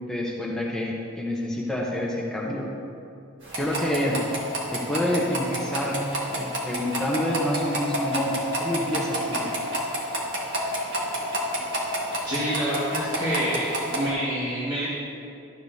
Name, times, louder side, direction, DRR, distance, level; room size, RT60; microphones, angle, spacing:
voice 1, 0.0-2.7 3.5-4.2 4.7-9.5, left 1 dB, 5° left, -4 dB, 0.8 m, -28 dB
sound 1, 3.4-14.1, equal, 60° right, 1.6 m, -30 dB
voice 2, 12.2-14.9, equal, 20° right, -12 dB, 1.7 m, -27 dB
12.5 x 6.9 x 2.7 m, 2.6 s
head